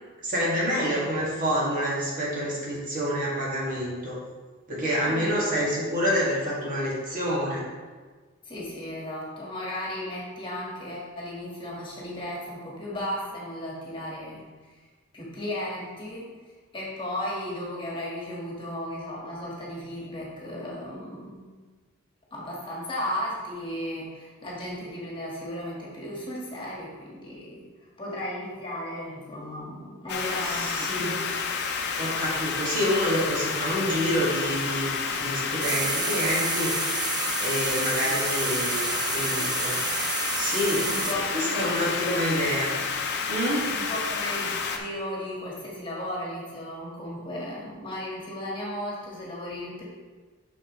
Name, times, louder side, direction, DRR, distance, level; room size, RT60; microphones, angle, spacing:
voice 1, 0.2-4.2 4.7-7.6 30.4-31.1 32.0-36.7 37.4-39.8 40.4-42.7 43.3-43.7, equal, 40° right, -6 dB, 2.1 m, -27 dB
voice 2, 5.1-5.4 8.4-14.4 14.7-14.8 15.1-16.4 16.7-21.5 22.3-27.6 28.0-31.2 35.7-36.2 40.8-42.3 43.7-49.8, left 1 dB, 25° left, -5 dB, 1.7 m, -35 dB
sound 1, 30.1-44.8, left 5 dB, 55° left, 0.7 m, -30 dB
sound 2, 35.6-41.2, right 6 dB, 20° right, 0.3 m, -30 dB
8.2 x 6.1 x 3.1 m, 1.4 s
head